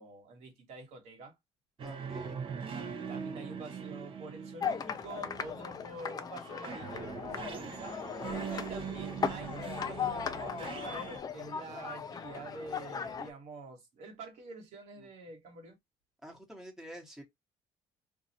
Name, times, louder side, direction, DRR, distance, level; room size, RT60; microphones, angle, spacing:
voice 1, 0.0-1.4 2.7-8.0 8.5-15.8, right 3 dB, 75° right, 1.4 m, -47 dB
voice 2, 1.8-2.4 16.2-17.2, equal, 5° right, 1.2 m, -47 dB
sound 1, 1.8-5.9 6.4-11.2, right 6 dB, 45° right, 0.7 m, -41 dB
sound 2, 4.6-13.3, left 7 dB, 30° left, 0.4 m, -38 dB
2.6 x 2.3 x 4.1 m
cardioid pair, 115°, 12 cm